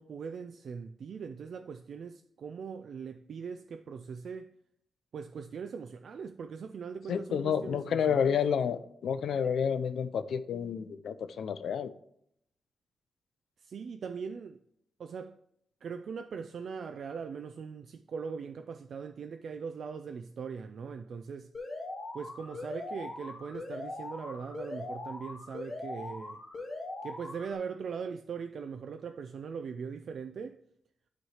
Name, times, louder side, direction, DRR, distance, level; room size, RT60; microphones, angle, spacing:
voice 1, 0.0-4.5 5.1-8.4 13.6-14.6 15.0-15.4 15.8-21.5 22.1-26.4 27.0-30.6, right 6 dB, 70° right, 0.3 m, -40 dB
voice 2, 7.1-11.9, left 7 dB, 90° left, 0.4 m, -30 dB
Alarm, 21.5-27.5, left 2 dB, 35° left, 1.8 m, -41 dB
9.1 x 3.2 x 5.6 m
cardioid pair, 100°, 0 cm